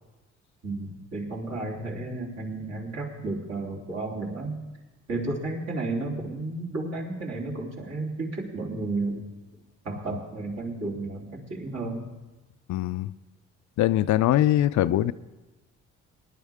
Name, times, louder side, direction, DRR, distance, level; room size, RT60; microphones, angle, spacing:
voice 1, 0.6-4.6 5.1-9.2 9.9-12.1, right 2 dB, 55° right, -3 dB, 3.5 m, -32 dB
voice 2, 12.7-13.1 13.8-15.1, left 13 dB, 70° left, 14 dB, 0.5 m, -22 dB
20.0 x 11.0 x 3.6 m, 1.1 s
cardioid pair, 90°, 30 cm